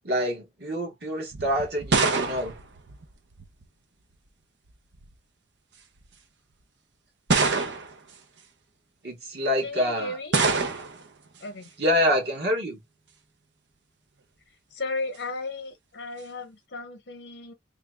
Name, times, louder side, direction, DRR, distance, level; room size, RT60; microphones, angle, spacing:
voice 1, 0.0-2.5 9.0-10.2 11.8-12.8, equal, 60° right, 1.7 m, -26 dB
sound 1, 1.3-3.7 4.7-5.1 6.0-6.1 7.3-8.1 10.3-11.1, right 4 dB, 85° right, 0.7 m, -26 dB
voice 2, 9.6-10.4 11.4-11.7 14.7-17.5, left 3 dB, 80° left, 0.8 m, -35 dB
3.4 x 2.4 x 3.1 m
head